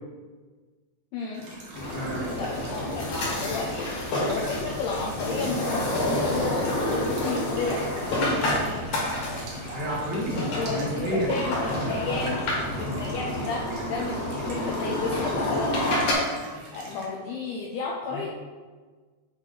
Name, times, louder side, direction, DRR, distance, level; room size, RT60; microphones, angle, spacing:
voice 1, 1.1-1.4 2.4-7.8 10.3-12.4 12.7-13.6 13.9-15.7 16.7-18.3, left 4 dB, 80° left, -3 dB, 2.4 m, -32 dB
sound 1, 1.3-17.0, right 1 dB, 80° right, 1.5 m, -43 dB
sound 2, 1.7-16.1, left 1 dB, 55° left, 2.8 m, -29 dB
voice 2, 1.9-3.1 8.1-9.1 9.7-11.5 11.8-12.2 12.8-13.3 18.1-18.3, equal, 60° right, -7 dB, 2.6 m, -33 dB
8.4 x 3.5 x 4.9 m, 1.4 s
omnidirectional pair, 5.4 m